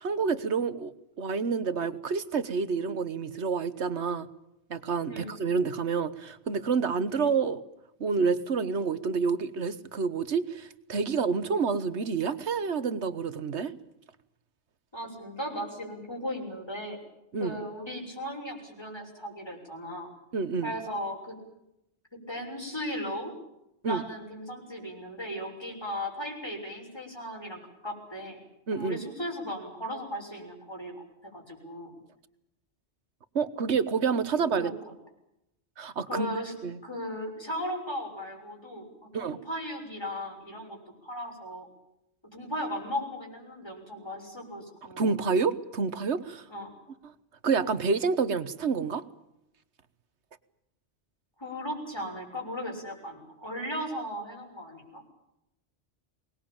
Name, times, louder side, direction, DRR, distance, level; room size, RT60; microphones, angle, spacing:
voice 1, 0.0-4.3 4.7-7.6 8.0-13.7 17.3-17.6 20.3-20.7 23.8-24.0 28.7-29.0 33.3-34.7 35.8-36.3 36.6-36.8 39.1-39.4 45.0-46.4 47.0-47.1 47.4-49.0, right 5 dB, 80° right, 13 dB, 1.6 m, -28 dB
voice 2, 14.9-17.0 17.4-20.1 20.6-21.4 22.1-23.3 23.9-28.4 28.7-31.9 34.3-34.7 36.1-36.6 36.8-38.9 39.2-41.7 42.3-45.2 46.5-46.7 51.4-55.1, equal, 25° left, 1 dB, 6.8 m, -37 dB
24.0 x 20.0 x 8.9 m, 0.84 s
omnidirectional pair, 1.1 m